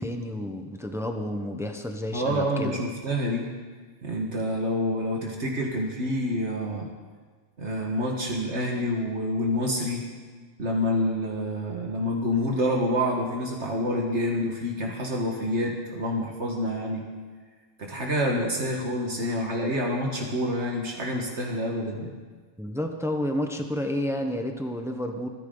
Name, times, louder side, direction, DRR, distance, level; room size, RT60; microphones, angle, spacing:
voice 1, 0.0-2.8 22.6-25.3, left 1 dB, ahead, 4 dB, 0.9 m, -30 dB
voice 2, 2.1-3.5 4.0-6.9 7.6-10.1 10.6-17.0 17.8-22.1, left 1 dB, 65° right, 0 dB, 1.9 m, -27 dB
23.5 x 10.0 x 3.9 m, 1.5 s
omnidirectional pair, 1.3 m